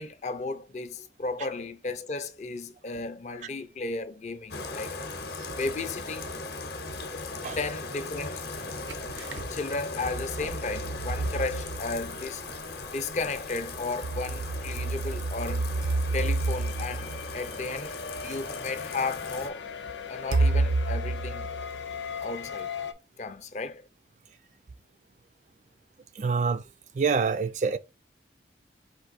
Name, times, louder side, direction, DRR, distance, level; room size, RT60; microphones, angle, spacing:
voice 1, 0.0-5.0 5.5-6.3 7.1-7.2 7.6-8.5 9.5-12.4 12.9-15.7 16.1-19.6 20.1-21.5 22.2-22.7 23.2-23.8, left 3 dB, 40° left, 0.5 m, -34 dB
Bathtub (filling or washing), 4.5-19.5, left 3 dB, 65° left, 0.8 m, -38 dB
sound 1, 8.5-9.5 10.0-12.4 13.6-18.0 18.8-18.9 20.3-22.2, right 2 dB, 90° right, 0.6 m, -30 dB
sound 2, 15.8-22.9, left 7 dB, 90° left, 0.5 m, -39 dB
voice 2, 26.2-26.6 27.0-27.8, right 5 dB, 40° right, 0.3 m, -26 dB
4.5 x 2.6 x 3.9 m
head